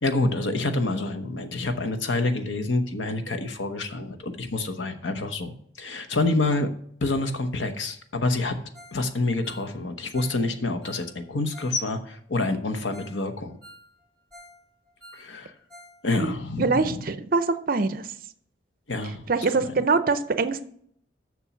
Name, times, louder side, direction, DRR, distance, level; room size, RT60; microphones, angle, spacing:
voice 1, 0.0-5.5 5.8-6.7 7.0-8.6 8.9-13.6 15.1-15.5 16.0-17.0 18.9-19.3 19.5-19.7, left 2 dB, 85° left, 8 dB, 1.0 m, -27 dB
Ringtone, 8.7-9.0 9.3-11.8 12.1-12.2 12.6-12.7 12.9-13.2 13.5-14.6 14.9-16.0 16.2-16.3 16.8-16.9, equal, 5° left, 2.7 m, -49 dB
voice 2, 16.6-18.0 19.3-20.6, right 4 dB, 50° right, 12 dB, 0.6 m, -24 dB
7.1 x 6.3 x 6.0 m, 0.65 s
head